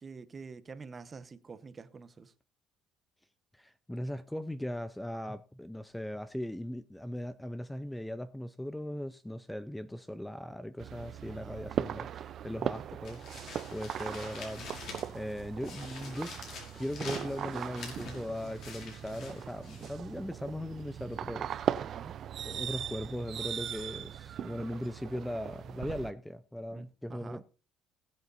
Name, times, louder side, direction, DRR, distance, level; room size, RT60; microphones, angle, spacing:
voice 1, 0.0-2.3 11.2-11.8 21.8-22.2 26.7-27.4, right 5 dB, 25° right, 1.0 m, -48 dB
voice 2, 3.5-22.1 22.4-27.4, left 1 dB, 5° left, 0.5 m, -39 dB
sound 1, 10.8-26.1, right 9 dB, 45° right, 0.5 m, -39 dB
sound 2, 13.0-15.3 15.6-19.9, left 4 dB, 55° left, 5.6 m, -47 dB
19.5 x 8.0 x 2.6 m
cardioid pair, 130°, 0 cm